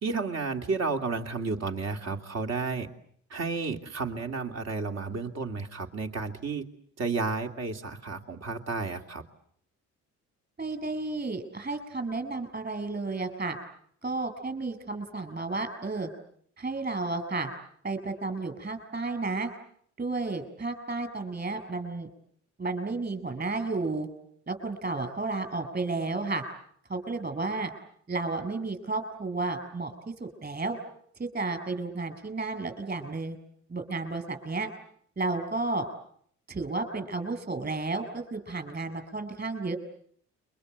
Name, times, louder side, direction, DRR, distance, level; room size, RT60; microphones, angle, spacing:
voice 1, 0.0-2.9 3.3-6.7 7.0-9.2, right 4 dB, 60° right, 5 dB, 2.9 m, -32 dB
voice 2, 10.6-13.6 14.0-16.1 16.6-17.5 17.8-19.5 20.0-22.1 22.6-24.1 24.5-26.4 26.9-27.7 28.1-29.9 30.2-30.8 31.2-33.4 33.7-34.7 35.2-35.9 36.5-39.8, right 3 dB, 30° right, 9 dB, 6.9 m, -32 dB
30.0 x 24.5 x 8.0 m, 0.65 s
cardioid pair, 90°, 30 cm